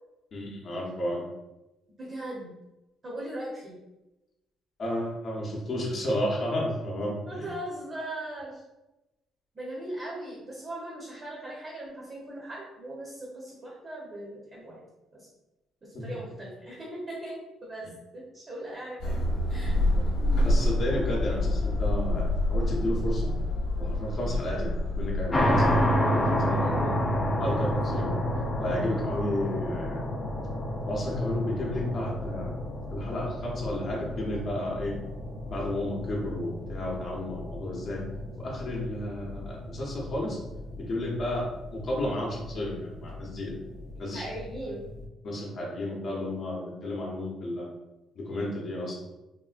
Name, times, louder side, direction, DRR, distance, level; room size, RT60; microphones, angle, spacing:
voice 1, 0.3-1.2 4.8-7.5 15.9-16.0 19.9-20.0 20.4-23.3 23.8-25.8 26.1-26.7 27.4-28.1 28.6-30.2 30.9-32.5 32.9-35.0 35.5-38.0 38.4-40.4 40.7-43.6 44.0-44.3 45.2-47.7 48.2-49.0, left 1 dB, 45° left, -3 dB, 0.7 m, -32 dB
voice 2, 2.0-2.5 3.0-3.8 7.2-8.6 9.5-14.8 15.1-15.3 15.8-17.3 17.7-17.9 18.1-19.2 19.5-19.7 24.4-24.5 26.6-27.1 44.1-44.8, right 1 dB, 30° right, -4 dB, 0.8 m, -39 dB
sound 1, 19.0-25.8, left 1 dB, 80° left, 0.7 m, -27 dB
sound 2, 25.3-45.0, equal, 15° left, 0.4 m, -31 dB
3.6 x 2.1 x 2.4 m, 0.99 s
cardioid pair, 130°, 0 cm